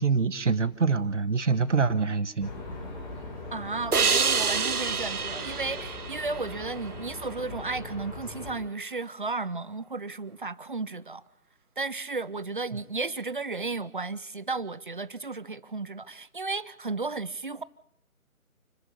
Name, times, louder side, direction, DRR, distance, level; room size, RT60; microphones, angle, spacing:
voice 1, 0.0-2.5, right 5 dB, 55° right, 1.7 m, -25 dB
sound 1, 2.4-8.6, left 2 dB, 30° left, 7.9 m, -40 dB
voice 2, 3.5-11.2 11.8-17.6, right 3 dB, 35° right, 0.7 m, -34 dB
sound 2, 3.9-7.2, right 5 dB, 90° right, 0.8 m, -28 dB
29.5 x 14.5 x 6.9 m
figure-of-eight pair, 150°, 44 cm